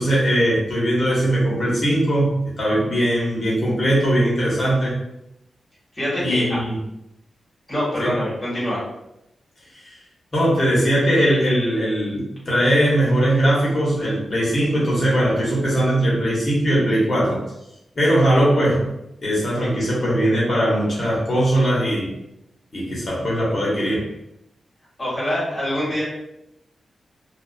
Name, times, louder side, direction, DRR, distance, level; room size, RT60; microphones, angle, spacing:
voice 1, 0.0-5.0 6.2-6.8 8.0-8.1 9.7-10.0 10.3-17.4 18.0-18.9 19.2-22.1 22.7-24.1, right 1 dB, 45° left, -6 dB, 1.0 m, -20 dB
voice 2, 5.9-6.6 7.7-8.8 25.0-26.0, equal, 25° left, -7 dB, 1.2 m, -24 dB
2.4 x 2.3 x 2.3 m, 0.84 s
wide cardioid pair, 115°, 0 cm